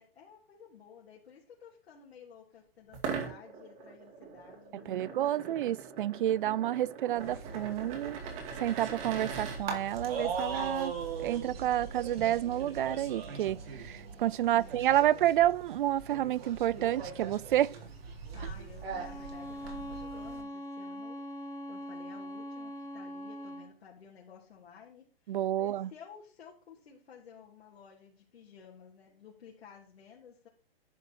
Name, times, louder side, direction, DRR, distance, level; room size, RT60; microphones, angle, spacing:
voice 1, 0.0-5.6 14.4-14.8 18.3-30.5, left 7 dB, 80° left, 3.2 m, -54 dB
sound 1, 2.9-9.6, right 6 dB, 35° right, 2.4 m, -41 dB
voice 2, 4.9-8.2 8.6-10.9 11.2-17.7 25.3-25.9, right 12 dB, 55° right, 0.5 m, -29 dB
sound 2, 7.1-20.4, right 5 dB, 75° right, 3.7 m, -40 dB
Bowed string instrument, 18.9-23.8, equal, 10° left, 1.1 m, -42 dB
11.0 x 5.3 x 5.5 m
hypercardioid pair, 160°, 30 cm